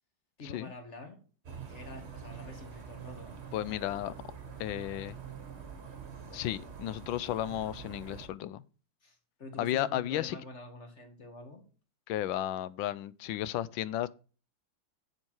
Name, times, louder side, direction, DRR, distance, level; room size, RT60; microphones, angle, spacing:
voice 1, 0.4-1.2 1.7-3.4 9.0-11.6, left 2 dB, 35° left, 2.4 m, -47 dB
sound 1, 1.4-8.3, right 6 dB, 35° right, 1.5 m, -46 dB
voice 2, 3.5-4.2 4.6-5.1 6.3-8.6 9.6-10.4 12.1-14.1, left 12 dB, 85° left, 1.3 m, -33 dB
7.7 x 7.5 x 4.5 m
omnidirectional pair, 2.1 m